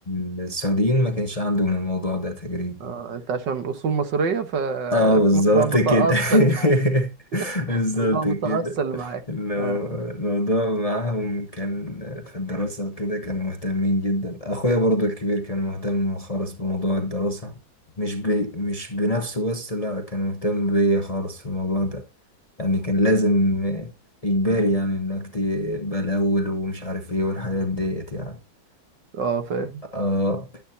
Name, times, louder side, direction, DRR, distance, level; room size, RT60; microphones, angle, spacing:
voice 1, 0.1-2.9 4.9-9.0 9.3-17.6 18.0-22.0 22.6-23.9 24.2-28.4 29.9-30.6, left 1 dB, 25° left, 0.9 m, -24 dB
voice 2, 2.8-5.2 5.5-6.7 7.7-9.2 9.6-10.0 29.1-29.8, right 5 dB, 70° right, 1.9 m, -26 dB
11.0 x 9.8 x 2.7 m
omnidirectional pair, 2.0 m